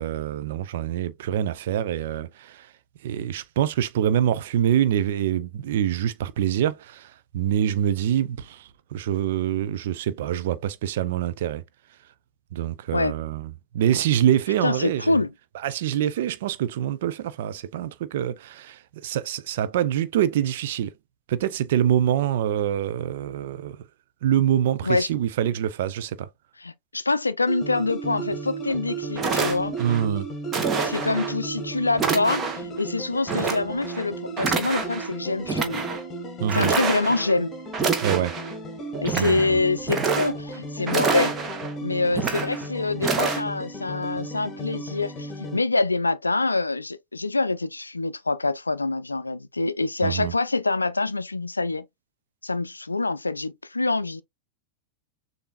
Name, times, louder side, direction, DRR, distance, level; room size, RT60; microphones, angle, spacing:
voice 1, 0.0-2.7 3.0-11.6 12.5-15.2 15.6-20.9 21.3-23.8 24.2-26.3 29.8-30.3 36.4-36.7 38.0-38.3 39.2-39.6 50.0-50.3, right 10 dB, 55° right, 0.5 m, -25 dB
voice 2, 14.6-15.3 24.8-25.1 26.6-29.7 30.8-35.8 36.5-37.5 39.0-41.3 41.8-51.9 52.4-54.2, left 3 dB, 80° left, 0.4 m, -25 dB
sound 1, 27.5-45.6, right 2 dB, 25° left, 1.6 m, -35 dB
sound 2, 28.7-28.8 29.2-30.0 30.5-31.3 31.9-32.7 33.3-34.0 34.4-35.1 35.4-36.0 36.5-37.3 37.7-38.5 38.9-39.5 39.8-40.5 40.9-41.7 42.1-42.7 43.0-43.4, right 4 dB, 25° right, 1.3 m, -27 dB
6.7 x 2.7 x 2.5 m
figure-of-eight pair, 90°, 0 cm